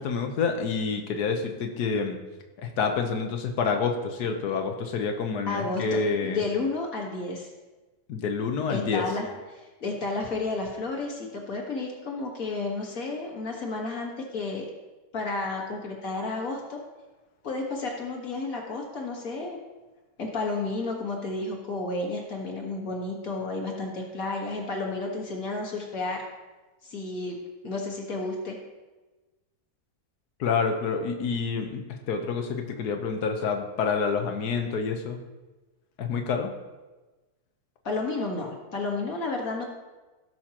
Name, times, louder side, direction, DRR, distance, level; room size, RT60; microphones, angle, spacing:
voice 1, 0.0-2.2 2.6-6.4 8.1-9.0 30.4-35.2 36.0-36.5, left 5 dB, 85° left, 4 dB, 1.4 m, -28 dB
voice 2, 5.5-7.5 8.7-14.7 15.1-16.8 17.4-19.6 20.2-26.2 26.8-27.4 27.6-28.6 37.8-39.6, left 3 dB, 60° left, 0 dB, 1.9 m, -31 dB
17.5 x 6.3 x 2.9 m, 1.2 s
omnidirectional pair, 1.6 m